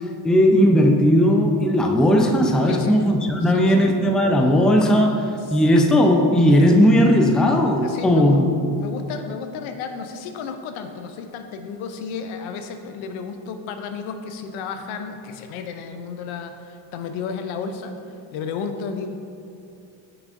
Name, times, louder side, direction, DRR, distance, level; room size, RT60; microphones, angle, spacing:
voice 1, 0.2-5.2 5.5-8.4, equal, ahead, 2 dB, 0.4 m, -17 dB
voice 2, 2.7-3.0 3.4-3.9 5.4-5.6 7.8-8.4 8.7-17.9 18.3-19.1, left 5 dB, 75° left, 7 dB, 0.7 m, -32 dB
6.2 x 6.0 x 2.6 m, 2.6 s
supercardioid pair, 70°, 49 cm